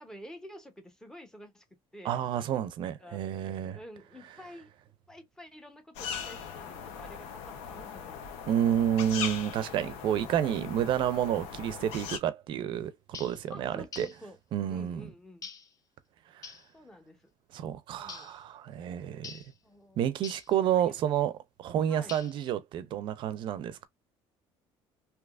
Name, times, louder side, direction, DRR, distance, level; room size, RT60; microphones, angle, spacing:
voice 1, 0.0-1.6 1.9-2.2 3.0-3.3 3.7-4.7 5.1-8.3 13.5-14.4 14.7-15.5 16.7-17.3 18.0-18.3 19.6-20.0 20.7-21.0 21.9-22.2, left 1 dB, 5° left, 0.8 m, -49 dB
voice 2, 2.0-3.8 8.5-14.1 14.5-15.1 16.3-16.5 17.5-19.4 20.0-23.9, right 10 dB, 55° right, 0.5 m, -30 dB
sound 1, 5.9-12.2, left 7 dB, 85° left, 0.9 m, -40 dB
sound 2, 13.1-13.4 13.9-14.2 15.4-15.7 16.4-16.7 18.1-18.4 19.2-19.5 20.2-20.5 22.1-22.5, left 6 dB, 35° left, 0.6 m, -45 dB
3.4 x 2.9 x 2.4 m
cardioid pair, 145°, 10 cm